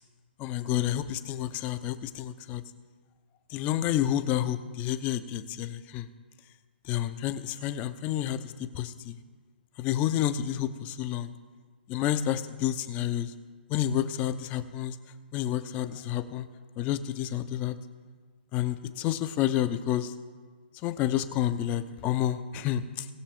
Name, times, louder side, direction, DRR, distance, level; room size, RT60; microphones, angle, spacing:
voice 1, 0.4-2.6 3.5-6.1 6.8-9.1 9.8-11.3 11.9-13.3 13.7-15.0 15.3-16.5 16.8-17.8 18.5-20.1 20.8-23.1, left 11 dB, 25° left, 11 dB, 0.7 m, -29 dB
19.5 x 6.6 x 3.7 m, 1.5 s
hypercardioid pair, 135°, 6 cm